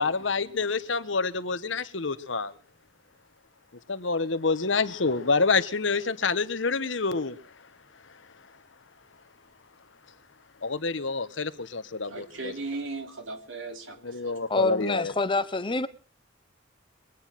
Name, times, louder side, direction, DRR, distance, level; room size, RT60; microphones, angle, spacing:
voice 1, 0.0-2.5 3.9-7.7 10.6-12.5 14.0-15.1, left 4 dB, 80° left, 1.2 m, -27 dB
voice 2, 12.1-14.3, right 3 dB, 85° right, 3.4 m, -37 dB
voice 3, 14.5-15.9, left 3 dB, 25° left, 0.9 m, -26 dB
22.5 x 9.7 x 5.9 m
head